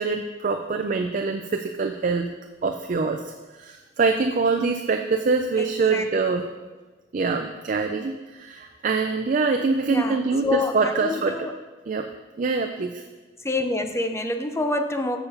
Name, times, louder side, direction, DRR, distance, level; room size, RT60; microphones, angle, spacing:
voice 1, 0.0-2.3 2.6-3.2 3.6-6.5 7.1-11.3 11.9-12.1 12.4-13.0, right 4 dB, 45° right, 5 dB, 0.4 m, -24 dB
voice 2, 5.6-6.1 9.9-11.5 13.4-15.2, left 2 dB, 15° left, 6 dB, 0.5 m, -27 dB
7.0 x 6.9 x 5.4 m, 1.2 s
head